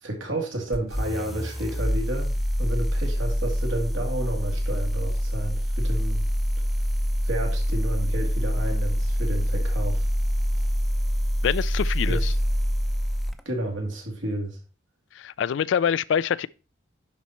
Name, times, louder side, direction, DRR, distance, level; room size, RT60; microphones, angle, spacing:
voice 1, 0.0-6.2 7.2-10.1 12.1-12.3 13.5-14.6, right 1 dB, 85° right, 2.4 m, -31 dB
sound 1, 0.7-13.4, equal, ahead, 0.5 m, -25 dB
voice 2, 11.4-12.3 15.1-16.5, left 8 dB, 75° left, 0.3 m, -25 dB
10.5 x 4.2 x 4.3 m
head